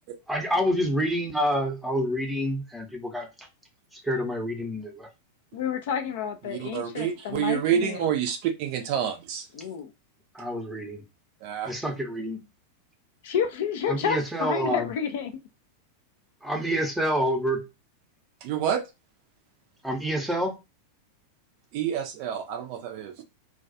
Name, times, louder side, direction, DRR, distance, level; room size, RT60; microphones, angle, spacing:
voice 1, 0.3-3.5 3.9-5.1 10.3-11.0 11.7-12.4 13.9-14.9 16.4-17.6 19.8-20.5, equal, ahead, 0.7 m, -27 dB
voice 2, 5.5-8.0 9.5-9.9 13.2-15.3, left 7 dB, 55° left, 0.3 m, -30 dB
voice 3, 6.5-9.5 11.4-11.7 18.4-18.8 21.7-23.2, right 9 dB, 45° right, 0.4 m, -28 dB
2.3 x 2.2 x 2.5 m
figure-of-eight pair, 90°, 0 cm